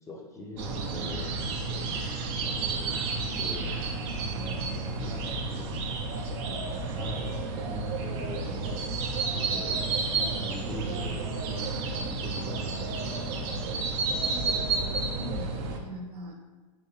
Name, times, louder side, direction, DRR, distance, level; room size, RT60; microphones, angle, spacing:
voice 1, 0.0-1.9 2.4-3.7 4.2-5.8 6.4-8.9 9.3-13.5, equal, 15° left, -2 dB, 0.5 m, -42 dB
sound 1, 0.6-15.8, right 3 dB, 45° right, 0.5 m, -31 dB
voice 2, 14.0-16.4, right 1 dB, 75° right, 1 dB, 0.8 m, -42 dB
3.5 x 2.9 x 2.9 m, 1.4 s
hypercardioid pair, 120°, 21 cm